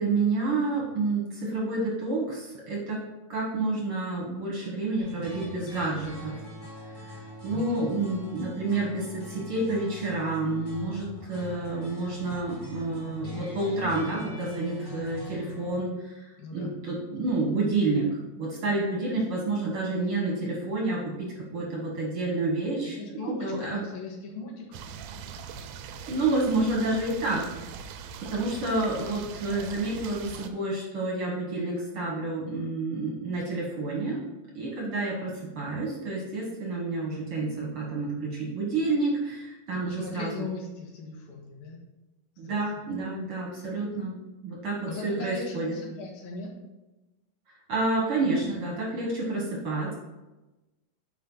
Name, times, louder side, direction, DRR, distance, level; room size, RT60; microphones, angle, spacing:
voice 1, 0.0-3.0 3.3-6.3 6.9-16.3 16.5-23.8 26.1-27.4 28.3-34.2 34.5-40.4 42.4-44.1 44.4-45.8 47.7-49.9, right 2 dB, 55° right, -3 dB, 1.6 m, -29 dB
sound 1, 5.0-15.8, left 2 dB, 20° left, 1.8 m, -42 dB
voice 2, 7.5-7.9 16.4-16.7 23.0-24.8 39.9-41.8 42.4-42.6 44.9-46.5, left 3 dB, 85° left, -2 dB, 3.3 m, -38 dB
sound 2, 24.7-30.5, right 7 dB, 85° right, 2.4 m, -41 dB
10.5 x 4.4 x 3.9 m, 1.1 s
omnidirectional pair, 4.2 m